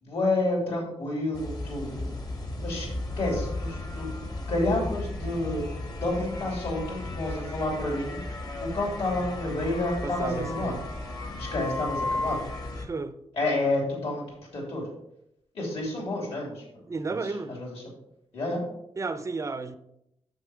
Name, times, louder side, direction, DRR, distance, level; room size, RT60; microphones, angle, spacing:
voice 1, 0.0-2.1 2.6-4.1 4.5-5.6 5.9-8.2 8.6-10.8 11.4-12.4 13.4-14.3 14.5-14.9 15.5-16.6 17.1-17.8 18.3-18.6, left 2 dB, 60° left, 3.1 m, -29 dB
sound 1, 1.3-12.8, left 2 dB, 35° left, 1.2 m, -35 dB
voice 2, 10.0-10.8 12.8-13.2 16.9-17.7 19.0-19.8, right 4 dB, 25° right, 0.5 m, -33 dB
6.7 x 6.5 x 4.8 m
wide cardioid pair, 150°, 11 cm